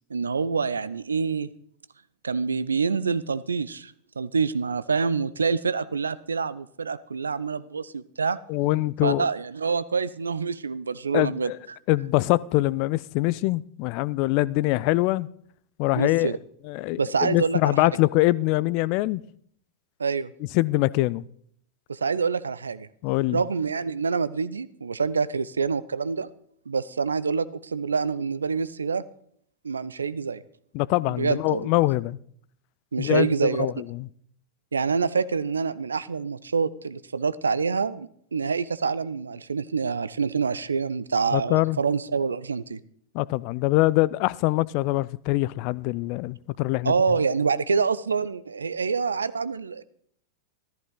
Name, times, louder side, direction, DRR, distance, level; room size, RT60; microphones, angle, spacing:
voice 1, 0.1-1.5 2.2-8.4 9.0-11.8 16.0-16.4 17.0-17.8 20.0-20.3 21.9-22.9 23.3-26.3 26.7-29.0 29.6-30.4 31.1-31.7 32.9-33.7 34.7-42.8 46.8-49.8, right 5 dB, 75° right, 0.5 m, -26 dB
voice 2, 8.5-9.3 11.1-11.5 11.9-15.3 15.8-16.3 16.7-19.2 20.5-21.2 23.0-23.4 30.7-32.2 33.0-34.1 41.3-41.8 43.1-46.9, left 19 dB, 45° left, 0.4 m, -24 dB
14.0 x 13.5 x 3.9 m
figure-of-eight pair, 90°, 0 cm